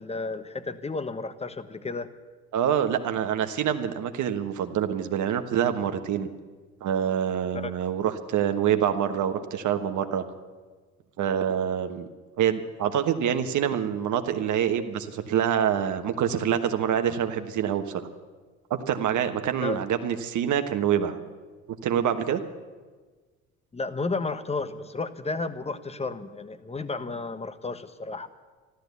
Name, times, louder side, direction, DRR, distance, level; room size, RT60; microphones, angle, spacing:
voice 1, 0.0-2.1 7.5-7.7 19.6-19.8 23.7-28.3, left 3 dB, 15° left, 12 dB, 1.1 m, -32 dB
voice 2, 2.5-6.3 6.8-10.2 11.2-12.1 12.4-18.0 18.7-21.2 21.8-22.4, right 9 dB, 55° right, 8 dB, 1.3 m, -26 dB
13.5 x 13.0 x 8.2 m, 1.4 s
hypercardioid pair, 65°, 35 cm